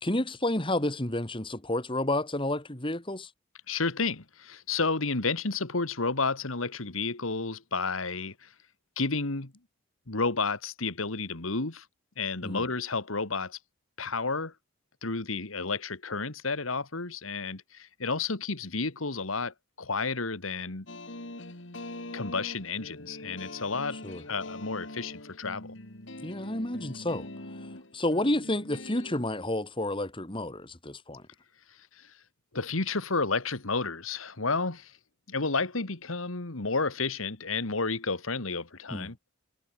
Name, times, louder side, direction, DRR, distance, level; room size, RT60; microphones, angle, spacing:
voice 1, 0.0-3.3 12.4-12.6 24.0-24.2 26.2-27.3 27.9-31.2 38.9-39.1, left 1 dB, 25° left, 2.6 m, -30 dB
voice 2, 3.7-8.5 9.0-9.5 10.1-11.9 12.2-13.6 14.0-14.5 15.0-20.9 22.1-24.0 24.3-25.8 32.0-32.1 32.5-34.9 35.3-39.2, left 4 dB, 85° left, 2.1 m, -31 dB
sound 1, 20.9-29.2, left 2 dB, 60° left, 3.3 m, -43 dB
head